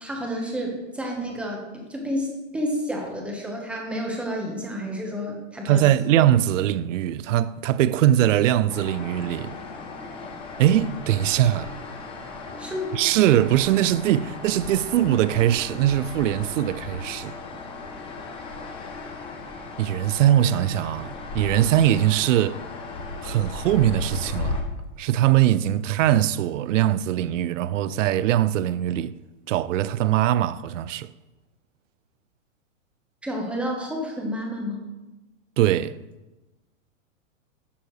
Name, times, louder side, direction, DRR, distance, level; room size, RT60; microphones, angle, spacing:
voice 1, 0.0-5.9 12.6-13.0 33.2-34.8, equal, 5° right, 1.1 m, -30 dB
voice 2, 5.6-9.6 10.6-11.7 12.9-17.4 19.8-22.6 23.2-24.6 25.0-29.2 29.5-31.1 35.6-36.0, right 12 dB, 70° right, 0.5 m, -21 dB
sound 1, 8.7-24.6, left 3 dB, 15° left, 0.6 m, -36 dB
10.5 x 6.8 x 3.2 m
hypercardioid pair, 150°, 39 cm